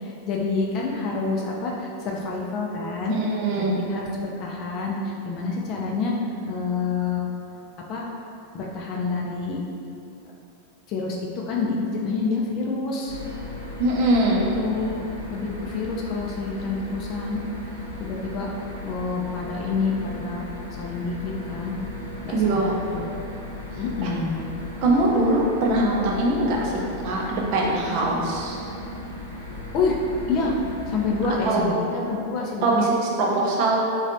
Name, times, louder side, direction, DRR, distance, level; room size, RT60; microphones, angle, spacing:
voice 1, 0.0-3.2 3.6-5.0 5.2-6.1 6.5-7.2 7.9-8.1 8.5-9.6 10.9-11.2 11.5-13.2 14.3-14.9 15.3-17.4 18.0-18.5 18.8-20.4 20.8-21.7 22.2-23.1 23.8-24.4 26.5-26.6 28.0-28.3 29.7-30.0 30.3-30.6 30.9-32.9, left 4 dB, 35° left, -2 dB, 0.4 m, -28 dB
voice 2, 3.1-3.8 13.8-14.5 22.3-22.7 24.0-24.1 24.8-28.6 31.4-31.7 32.6-33.8, right 2 dB, 45° right, -2 dB, 0.6 m, -22 dB
sound 1, 13.1-31.5, left 2 dB, 90° left, 0.9 m, -36 dB
4.0 x 3.1 x 2.6 m, 2.7 s
figure-of-eight pair, 90°, 0 cm